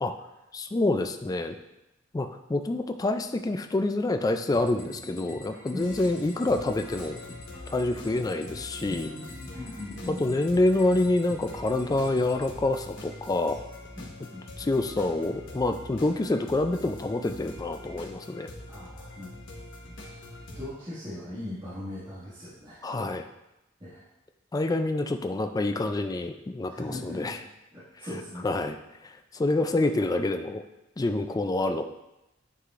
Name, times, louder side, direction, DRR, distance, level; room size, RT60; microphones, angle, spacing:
voice 1, 0.5-1.6 2.1-7.2 7.7-9.1 10.1-13.6 14.6-18.5 22.8-23.3 24.5-27.4 28.0-28.1 28.4-28.8 29.0-30.6 31.0-31.9, left 2 dB, 20° left, 7 dB, 0.3 m, -27 dB
sound 1, 4.5-12.5, left 1 dB, 50° left, 1.8 m, -47 dB
sound 2, 5.8-20.7, left 2 dB, 70° left, 1.2 m, -44 dB
voice 2, 8.8-10.4 14.0-14.7 18.7-19.9 20.5-22.8 23.8-24.0 26.7-27.4 27.7-28.5, left 1 dB, 25° right, -12 dB, 1.9 m, -40 dB
9.6 x 4.8 x 2.5 m, 0.93 s
head